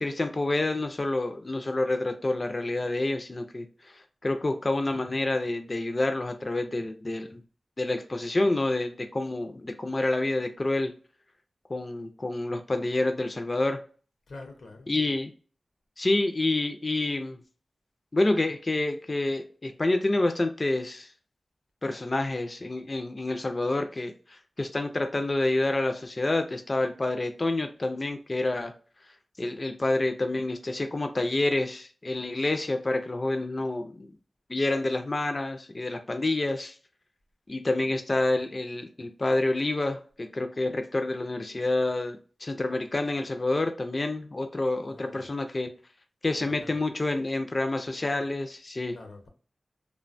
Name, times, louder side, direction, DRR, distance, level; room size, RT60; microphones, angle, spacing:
voice 1, 0.0-3.7 4.2-7.4 7.8-10.9 11.7-13.8 14.9-15.3 16.0-17.4 18.1-21.1 21.8-28.7 29.4-34.1 34.5-36.7 37.5-45.7 46.2-49.0, left 2 dB, 35° left, 0.3 m, -28 dB
voice 2, 14.3-14.9 44.8-45.3 46.4-46.8 48.9-49.3, left 2 dB, 80° left, 0.6 m, -46 dB
3.1 x 2.1 x 2.4 m
wide cardioid pair, 105°, 0 cm